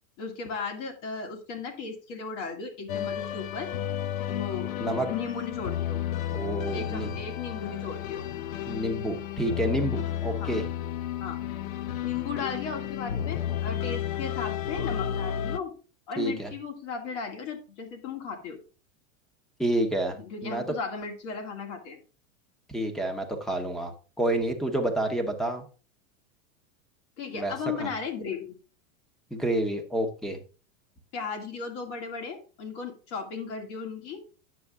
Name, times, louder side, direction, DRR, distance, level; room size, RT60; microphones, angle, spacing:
voice 1, 0.2-3.7 4.3-4.7 5.1-6.0 6.7-8.3 10.4-10.5 11.2-11.4 12.0-15.7 16.1-18.6 20.2-22.0 27.2-28.5 31.1-34.2, left 5 dB, 60° left, 3 dB, 2.4 m, -36 dB
sound 1, 2.9-15.6, left 10 dB, 85° left, 0.8 m, -32 dB
voice 2, 6.3-7.1 8.7-10.6 16.2-16.5 19.6-20.7 22.7-25.6 27.3-27.5 27.8-27.9 29.3-30.4, right 1 dB, ahead, 6 dB, 0.9 m, -29 dB
9.4 x 6.5 x 3.5 m, 0.36 s
supercardioid pair, 155°, 40 cm